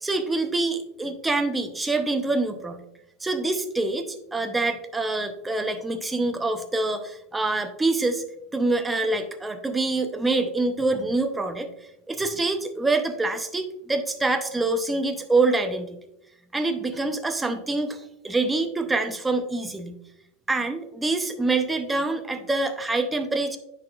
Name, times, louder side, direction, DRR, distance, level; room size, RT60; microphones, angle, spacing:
voice 1, 0.0-2.8 3.2-8.2 8.5-11.7 12.1-16.0 16.5-20.0 20.5-23.6, right 2 dB, 10° right, 6 dB, 0.7 m, -25 dB
10.0 x 4.9 x 2.4 m, 0.83 s
supercardioid pair, 135°, 0 cm